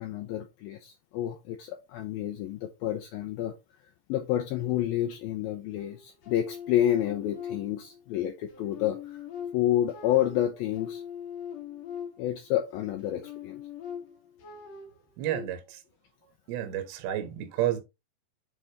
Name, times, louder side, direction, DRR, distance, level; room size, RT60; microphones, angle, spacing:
voice 1, 0.0-3.5 4.1-9.2 9.5-11.0 12.2-13.6, left 12 dB, 85° left, 2.1 m, -29 dB
sound 1, 5.8-8.1 8.5-12.5 13.0-15.4, left 8 dB, 65° left, 1.6 m, -41 dB
voice 2, 15.2-15.8 16.5-17.8, right 12 dB, 70° right, 2.9 m, -30 dB
7.5 x 5.0 x 2.9 m
omnidirectional pair, 5.1 m